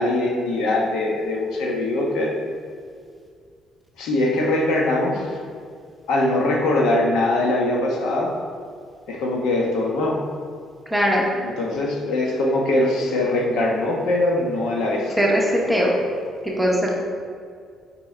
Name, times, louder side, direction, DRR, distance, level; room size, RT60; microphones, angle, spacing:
voice 1, 0.0-2.3 4.0-5.3 6.1-8.3 9.1-10.2 11.4-15.2, left 2 dB, 70° left, -1 dB, 1.1 m, -22 dB
voice 2, 10.9-11.3 15.2-16.0 16.4-16.9, equal, 5° right, -3 dB, 0.8 m, -20 dB
6.0 x 4.8 x 4.4 m, 2.1 s
cardioid pair, 165°, 0 cm